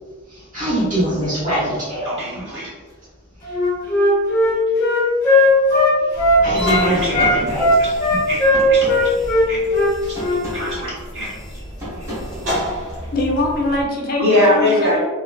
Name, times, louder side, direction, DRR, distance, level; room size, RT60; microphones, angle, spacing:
voice 1, 0.5-2.2 6.4-7.6, right 1 dB, 35° right, -9 dB, 1.4 m, -22 dB
voice 2, 2.0-2.7 6.5-7.4 7.8-7.9 8.3-8.4 8.7-9.1 9.5-9.6 10.1-10.2 10.5-11.3 14.2-15.0, left 1 dB, 55° right, -7 dB, 1.0 m, -21 dB
Wind instrument woodwind instrument, 3.4-6.9 7.1-10.4, left 1 dB, 15° left, 0.7 m, -16 dB
sound 1, 6.1-13.8, equal, 80° right, 1.3 m, -32 dB
sound 2, 6.9-13.2, equal, 15° right, 0.9 m, -34 dB
voice 3, 13.1-15.0, left 1 dB, 40° left, 1 dB, 0.3 m, -22 dB
3.0 x 2.4 x 2.3 m, 1.4 s
head